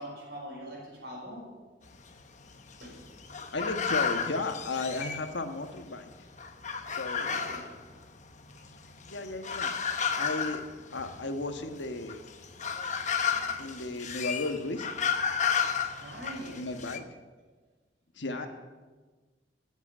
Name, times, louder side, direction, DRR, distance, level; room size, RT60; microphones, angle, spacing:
voice 1, 0.0-1.5 2.8-3.0 7.1-7.7 8.5-8.6 9.2-9.3 9.9-10.0 13.6-13.7 16.0-16.7 18.2-18.5, equal, 60° right, -1 dB, 6.1 m, -43 dB
sound 1, 1.9-5.8 6.1-17.0, left 6 dB, 40° left, 1.1 m, -33 dB
voice 2, 3.5-6.1 6.9-7.3 9.0-9.7 10.1-10.6 10.9-12.2 13.6-14.9 16.6-17.0 18.1-18.5, left 2 dB, 80° left, 7 dB, 1.3 m, -34 dB
15.0 x 8.2 x 9.9 m, 1.4 s
head